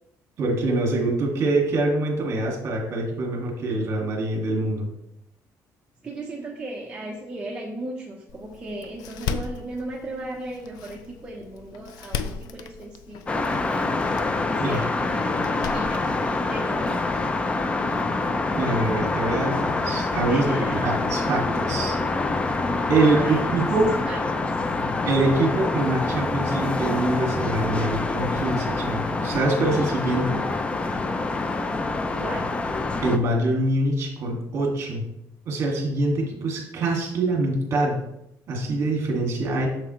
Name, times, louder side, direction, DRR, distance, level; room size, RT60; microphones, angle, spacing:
voice 1, 0.4-4.9 14.6-14.8 18.5-22.0 22.9-23.9 25.1-30.4 33.0-35.1 35.5-38.0 38.5-39.7, right 2 dB, 45° right, 0 dB, 2.1 m, -24 dB
voice 2, 6.0-13.9 14.4-16.2 16.5-17.1 20.3-20.9 23.0-23.5 24.1-24.5 32.2-32.5, right 2 dB, 15° right, -3 dB, 1.0 m, -36 dB
Door, 8.3-17.3, left 6 dB, 85° left, 0.5 m, -37 dB
sound 1, 13.3-33.2, left 3 dB, 20° left, 0.5 m, -26 dB
7.6 x 6.9 x 3.2 m, 0.81 s
cardioid pair, 155°, 6 cm